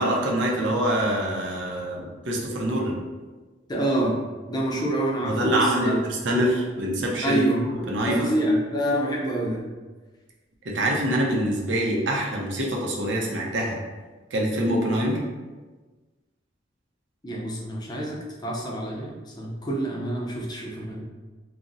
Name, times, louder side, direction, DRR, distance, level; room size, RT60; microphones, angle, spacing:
voice 1, 0.0-3.0 5.2-7.4 7.9-8.3 10.6-13.8 14.3-15.2, right 1 dB, 75° right, -1 dB, 0.6 m, -25 dB
voice 2, 3.7-4.2 4.5-6.0 7.2-9.6 17.2-21.0, right 1 dB, 25° left, -2 dB, 0.5 m, -27 dB
2.4 x 2.0 x 3.8 m, 1.3 s
head